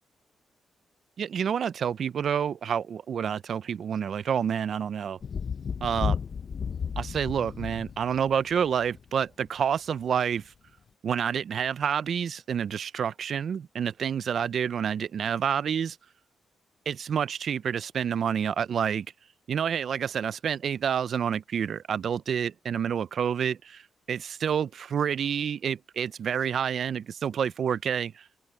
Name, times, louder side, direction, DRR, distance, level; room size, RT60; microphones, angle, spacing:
voice 1, 1.2-5.2 5.8-6.2 7.0-10.5 11.0-16.0 16.9-19.1 19.5-23.8 24.1-28.2, right 8 dB, 50° right, 0.4 m, -28 dB
Thunder, 5.2-9.1 10.4-10.5, left 6 dB, 40° left, 0.5 m, -33 dB
wide cardioid pair, 180°, 0 cm